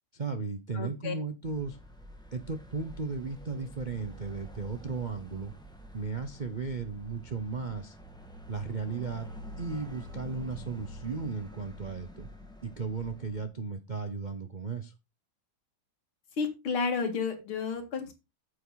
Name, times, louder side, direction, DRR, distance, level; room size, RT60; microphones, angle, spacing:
voice 1, 0.1-1.8 2.3-5.5 5.9-8.0 8.5-9.3 9.6-12.3 12.6-14.9, right 4 dB, 50° right, 7 dB, 0.5 m, -35 dB
voice 2, 0.7-1.1 16.4-18.1, left 5 dB, 85° left, 5 dB, 2.9 m, -31 dB
sound 1, 1.4-13.5, equal, ahead, 1.7 m, -47 dB
8.8 x 8.0 x 3.9 m, 0.25 s
omnidirectional pair, 2.3 m